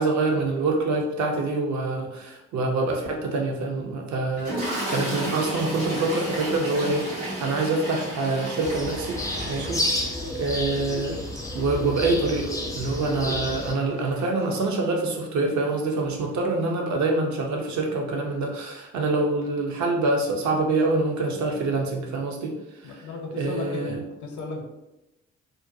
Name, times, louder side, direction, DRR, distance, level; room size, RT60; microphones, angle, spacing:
voice 1, 0.0-4.6 4.9-9.2 9.5-9.8 10.3-11.2 11.5-22.5 22.8-23.0 23.4-24.0, right 3 dB, 50° right, 1 dB, 0.6 m, -25 dB
Toilet flush, 4.3-14.7 15.6-15.8 16.0-16.2, right 1 dB, 80° right, 1.2 m, -34 dB
sound 1, 8.6-13.7, left 1 dB, 10° left, 0.5 m, -30 dB
voice 2, 22.8-24.6, left 3 dB, 50° left, 1 dB, 0.7 m, -35 dB
2.6 x 2.1 x 2.6 m, 0.98 s
figure-of-eight pair, 40°, 37 cm